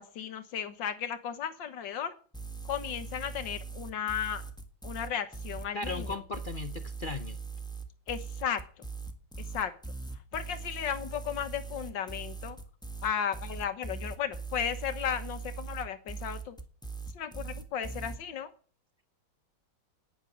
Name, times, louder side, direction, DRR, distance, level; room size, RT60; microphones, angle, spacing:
voice 1, 0.0-2.1 2.7-4.4 4.8-6.2 8.1-8.6 9.5-9.7 10.3-12.6 13.0-16.6 17.1-18.5, left 8 dB, 90° left, 10 dB, 1.9 m, -35 dB
sound 1, 2.3-18.2, right 4 dB, 5° left, 1.3 m, -40 dB
voice 2, 5.7-7.4, left 4 dB, 70° left, 10 dB, 0.4 m, -37 dB
10.0 x 9.1 x 9.8 m, 0.41 s
omnidirectional pair, 1.9 m